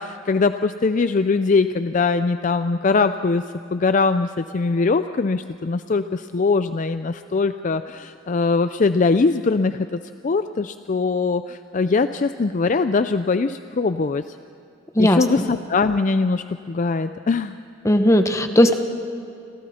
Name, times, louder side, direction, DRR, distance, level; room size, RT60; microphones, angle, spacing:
voice 1, 0.0-3.4 3.7-14.4 15.0-17.6, left 4 dB, 40° left, 11 dB, 0.4 m, -21 dB
voice 2, 14.9-15.4 17.8-18.8, left 1 dB, 15° left, 7 dB, 1.2 m, -17 dB
30.0 x 26.0 x 4.3 m, 2.7 s
head